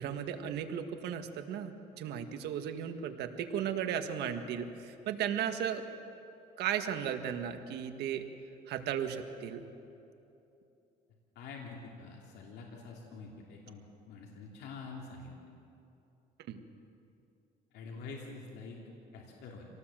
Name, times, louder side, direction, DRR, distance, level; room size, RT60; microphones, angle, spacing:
voice 1, 0.0-5.8 6.6-8.3 8.7-9.6 16.5-16.6, right 9 dB, 75° right, 7 dB, 1.7 m, -35 dB
voice 2, 11.3-13.8 14.1-15.3 17.7-18.8 19.1-19.7, left 4 dB, 80° left, -1 dB, 3.0 m, -46 dB
26.5 x 18.5 x 7.6 m, 2.8 s
cardioid pair, 110°, 17 cm